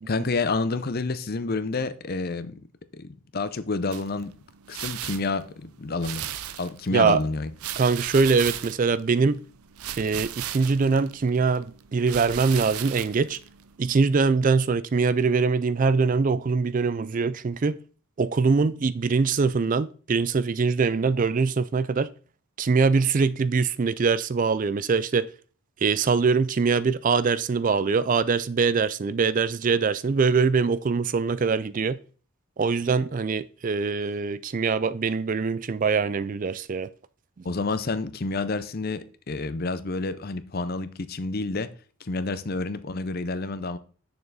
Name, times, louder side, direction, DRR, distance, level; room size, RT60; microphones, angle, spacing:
voice 1, 0.1-2.6 2.9-4.4 4.7-6.3 6.6-7.5 32.9-33.0 37.4-41.7 42.0-43.8, left 3 dB, 45° left, 0.6 m, -29 dB
sound 1, 3.9-13.9, right 11 dB, 85° right, 0.6 m, -37 dB
voice 2, 7.8-9.4 10.0-13.4 13.8-17.8 18.2-22.1 22.6-25.3 25.8-32.0 32.6-36.9, right 4 dB, 35° right, 0.3 m, -23 dB
8.9 x 6.8 x 4.0 m
head